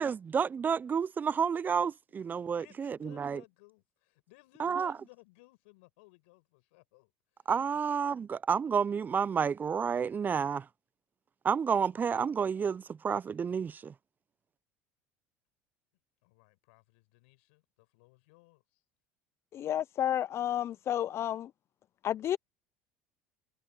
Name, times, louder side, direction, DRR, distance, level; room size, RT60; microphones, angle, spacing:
voice 1, 0.0-3.4 4.6-4.9 7.5-10.7 11.4-13.9, right 6 dB, 30° right, 0.4 m, -30 dB
voice 2, 2.6-7.9 16.2-18.8, left 25 dB, 75° left, 7.9 m, -60 dB
voice 3, 19.5-21.5 22.0-22.4, left 11 dB, 45° left, 0.4 m, -31 dB
hypercardioid pair, 80°, 6 cm